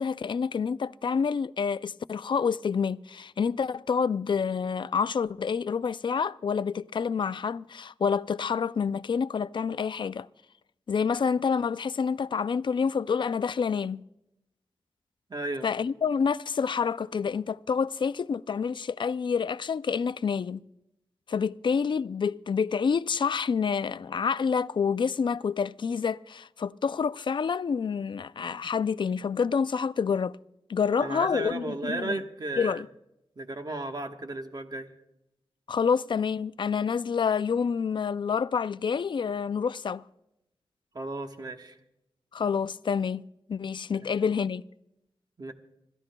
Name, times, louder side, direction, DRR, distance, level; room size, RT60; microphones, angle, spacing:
voice 1, 0.0-10.3 10.9-14.0 15.6-20.6 21.3-30.3 30.7-32.2 32.6-32.9 35.7-40.0 42.3-44.6, left 6 dB, 55° left, 0.4 m, -28 dB
voice 2, 15.3-15.7 31.0-32.8 33.4-34.9 40.9-41.8 45.4-45.5, right 2 dB, 45° right, 1.2 m, -34 dB
26.5 x 13.5 x 2.2 m
wide cardioid pair, 70°, 10 cm